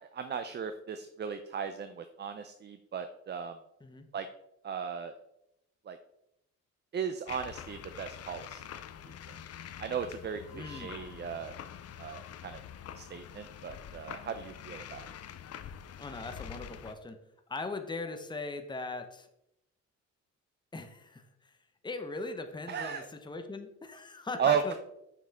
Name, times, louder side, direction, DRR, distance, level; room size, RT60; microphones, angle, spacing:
voice 1, 0.0-3.6 4.1-4.3 4.6-5.1 5.9-6.0 6.9-8.7 9.0-9.4 9.8-11.5 12.0-12.6 13.0-15.1 22.7-23.1 24.4-24.7, right 7 dB, 35° right, 9 dB, 0.5 m, -36 dB
sound 1, 7.3-16.9, left 9 dB, 55° left, 0.6 m, -46 dB
voice 2, 10.5-11.0 16.0-17.2 17.5-19.3 20.7-21.6 21.8-24.7, left 3 dB, 15° left, 6 dB, 0.9 m, -40 dB
6.7 x 6.0 x 3.6 m, 0.81 s
cardioid pair, 90°, 30 cm